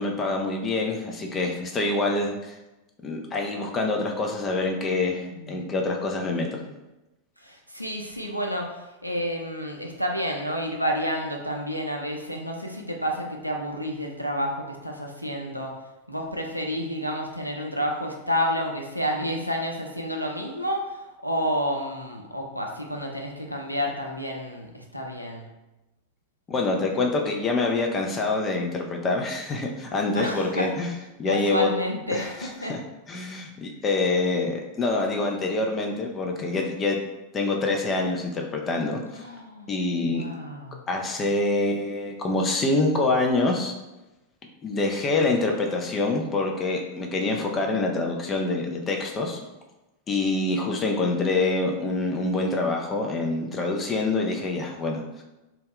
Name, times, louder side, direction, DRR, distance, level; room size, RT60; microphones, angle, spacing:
voice 1, 0.0-2.5 3.0-6.5 26.5-30.9 31.2-31.7 32.1-32.3 32.7-32.8 33.1-37.0 37.3-39.2 39.7-40.3 40.9-43.7 44.6-49.4 50.1-55.2, left 2 dB, 25° left, 1 dB, 0.4 m, -26 dB
voice 2, 5.3-5.7 6.2-6.7 7.4-15.7 16.1-25.5 30.1-30.7 31.3-32.8 39.1-40.8 47.3-47.6, equal, 90° right, 1 dB, 0.4 m, -30 dB
2.3 x 2.1 x 3.5 m, 1.0 s
figure-of-eight pair, 90°, 0 cm